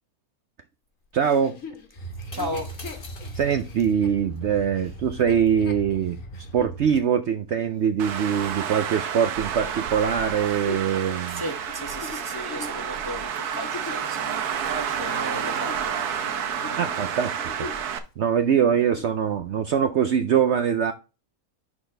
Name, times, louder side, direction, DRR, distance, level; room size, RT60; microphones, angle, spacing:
voice 1, 1.1-1.6 3.4-6.2 6.5-11.4 16.7-17.3 18.2-20.9, right 8 dB, 65° right, 0.7 m, -23 dB
Chuckle chortle, 1.2-6.8 7.4-7.5 10.1-14.1 14.7-16.2 16.5-16.8 17.2-17.9 18.2-18.3 18.7-19.2 19.8-19.9, left 4 dB, 60° left, 1.6 m, -41 dB
sound 1, 1.9-7.0, right 1 dB, 35° left, 1.5 m, -38 dB
voice 2, 2.3-2.8 4.8-4.9 8.4-8.5 11.3-17.1, equal, 20° left, 0.7 m, -36 dB
Traffic noise roadway noise, 8.0-18.0, right 8 dB, 80° right, 1.4 m, -30 dB
11.0 x 4.2 x 3.3 m
omnidirectional pair, 1.6 m